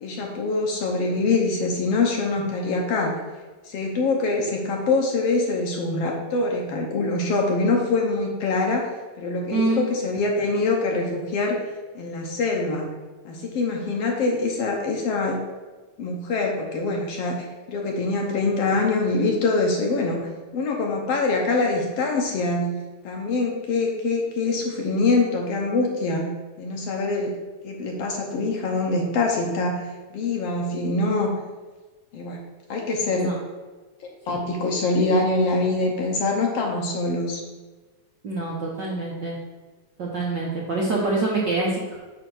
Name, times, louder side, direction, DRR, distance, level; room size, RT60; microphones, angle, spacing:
voice 1, 0.0-3.2 3.7-8.9 9.2-11.6 12.0-12.9 13.3-15.4 16.0-26.3 26.6-27.3 27.6-31.3 32.1-32.4 32.7-33.4 34.3-37.4, left 3 dB, 65° left, 1 dB, 1.8 m, -24 dB
voice 2, 9.5-9.8 33.1-33.3 34.3-34.4 38.2-39.4 40.0-42.0, right 2 dB, 55° right, -4 dB, 1.2 m, -25 dB
8.7 x 3.6 x 6.3 m, 1.3 s
omnidirectional pair, 3.4 m